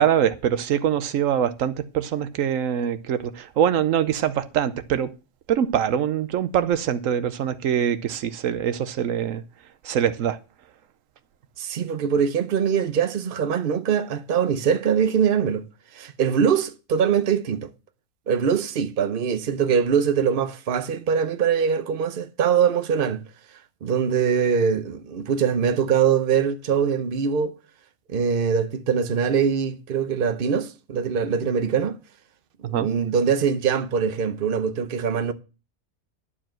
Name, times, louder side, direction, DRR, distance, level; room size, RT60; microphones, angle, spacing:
voice 1, 0.0-5.1 5.5-9.4 9.8-10.4 32.7-32.9, right 9 dB, 85° right, 1.1 m, -23 dB
voice 2, 11.6-15.6 15.9-17.7 18.3-23.2 23.8-27.6 28.1-32.0 32.6-35.3, right 7 dB, 50° right, 0.9 m, -23 dB
11.5 x 4.9 x 7.5 m
omnidirectional pair, 1.3 m